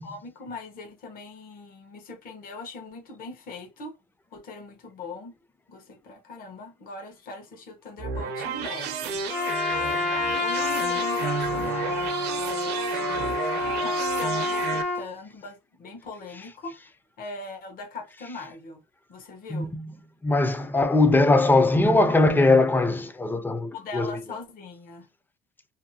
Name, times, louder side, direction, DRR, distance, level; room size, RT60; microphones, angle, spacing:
voice 1, 0.0-3.9 4.3-5.4 5.7-9.5 10.4-16.8 17.2-18.8 19.1-19.7 23.7-25.1, left 3 dB, 60° left, 0.9 m, -41 dB
sound 1, 8.0-14.8, right 6 dB, 75° right, 0.6 m, -32 dB
Trumpet, 9.3-15.1, left 3 dB, 75° left, 1.0 m, -28 dB
voice 2, 19.5-19.9 20.2-24.2, left 2 dB, 10° left, 0.4 m, -21 dB
2.6 x 2.2 x 2.6 m
cardioid pair, 110°, 17 cm